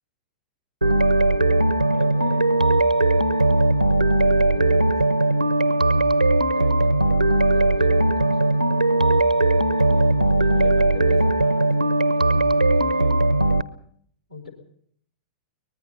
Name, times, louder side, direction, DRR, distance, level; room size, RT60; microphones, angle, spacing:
sound 1, 0.8-13.6, right 2 dB, 90° right, 0.8 m, -19 dB
voice 1, 1.8-2.6 3.5-6.0 6.5-9.3 9.8-13.3 14.3-14.5, left 5 dB, 80° left, 5 dB, 5.8 m, -41 dB
23.5 x 20.0 x 5.6 m, 0.63 s
figure-of-eight pair, 100°, 4 cm